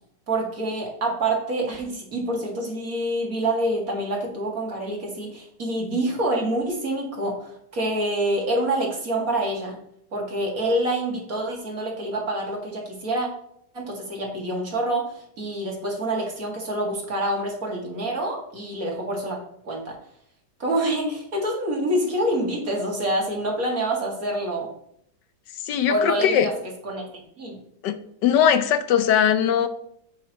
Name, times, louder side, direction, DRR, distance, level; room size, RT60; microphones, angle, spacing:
voice 1, 0.3-9.8 10.1-13.3 13.7-19.4 19.6-20.0 20.6-24.7 25.9-26.5 26.8-27.5, right 1 dB, 55° right, -1 dB, 2.6 m, -26 dB
voice 2, 25.7-26.5 27.8-28.0 28.2-29.7, left 9 dB, 85° left, 10 dB, 1.4 m, -20 dB
15.0 x 6.4 x 3.0 m, 0.70 s
omnidirectional pair, 1.8 m